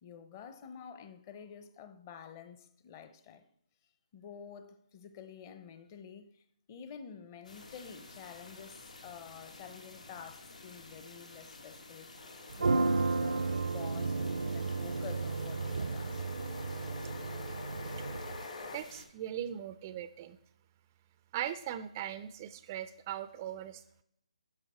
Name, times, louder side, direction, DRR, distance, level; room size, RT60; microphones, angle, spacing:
voice 1, 0.0-3.4 4.1-12.1 12.6-16.2, left 7 dB, 25° left, 0.7 m, -49 dB
sound 1, 7.4-19.1, left 2 dB, 85° left, 1.9 m, -52 dB
sound 2, 12.1-18.8, left 3 dB, 50° left, 1.8 m, -47 dB
sound 3, 12.5-18.4, right 3 dB, 85° right, 0.5 m, -33 dB
voice 2, 18.7-20.4 21.3-24.0, right 11 dB, 25° right, 0.3 m, -39 dB
10.5 x 6.1 x 4.3 m
hypercardioid pair, 160°, 4 cm